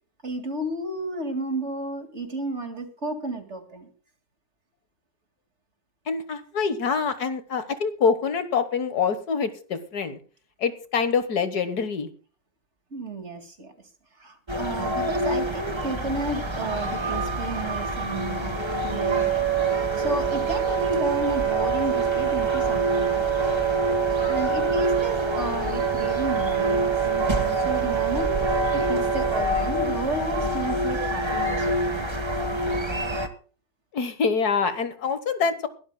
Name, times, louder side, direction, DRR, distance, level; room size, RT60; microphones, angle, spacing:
voice 1, 0.2-3.9 12.9-13.7 14.2-19.3 20.0-23.6 24.2-28.4 28.7-32.1, right 2 dB, 40° right, 7 dB, 2.3 m, -32 dB
voice 2, 6.1-10.2 10.6-12.1 33.9-35.7, left 5 dB, 65° left, 11 dB, 1.7 m, -25 dB
sound 1, 14.5-33.3, left 1 dB, 20° right, 1.2 m, -28 dB
Wind instrument woodwind instrument, 18.6-29.4, right 13 dB, 80° right, 1.8 m, -26 dB
22.0 x 12.5 x 2.2 m, 0.39 s
omnidirectional pair, 1.8 m